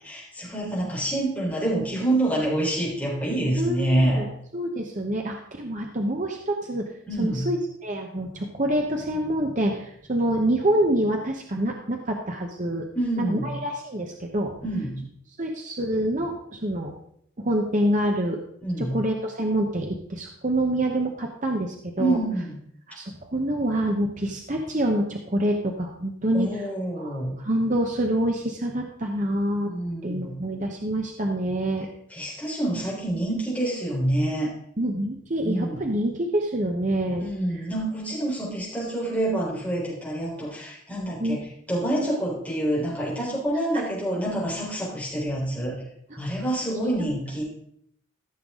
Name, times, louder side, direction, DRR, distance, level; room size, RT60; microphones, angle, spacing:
voice 1, 0.0-4.3 7.1-7.5 12.9-13.5 14.6-15.0 18.6-19.0 22.0-22.6 26.3-27.4 29.6-30.3 32.1-34.5 35.4-35.8 37.2-41.4 41.7-45.8 46.2-47.4, right 1 dB, 5° left, -6 dB, 3.9 m, -27 dB
voice 2, 3.6-4.3 4.5-6.9 7.2-12.9 13.2-14.5 15.4-16.9 17.4-18.4 18.8-22.2 22.9-26.6 27.0-29.7 30.0-31.9 34.8-37.3 41.2-41.4 41.9-42.2 46.8-46.9, right 1 dB, 40° right, 2 dB, 1.0 m, -26 dB
14.5 x 6.8 x 3.7 m, 0.69 s
head